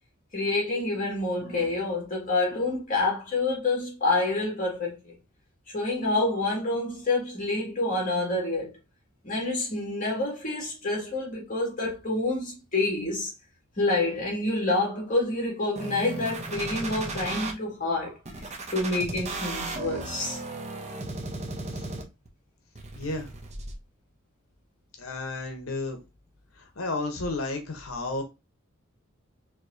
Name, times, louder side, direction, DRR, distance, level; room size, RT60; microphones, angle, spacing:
voice 1, 0.3-5.2 5.7-8.7 9.2-13.3 13.8-20.4, left 2 dB, 40° left, 1.9 m, -28 dB
sound 1, 15.8-17.5 18.3-22.3 22.8-23.7, right 2 dB, 35° right, 0.7 m, -35 dB
voice 2, 22.9-23.3 25.0-26.0 26.8-28.2, left 2 dB, 80° left, 0.9 m, -32 dB
4.5 x 3.0 x 2.6 m
head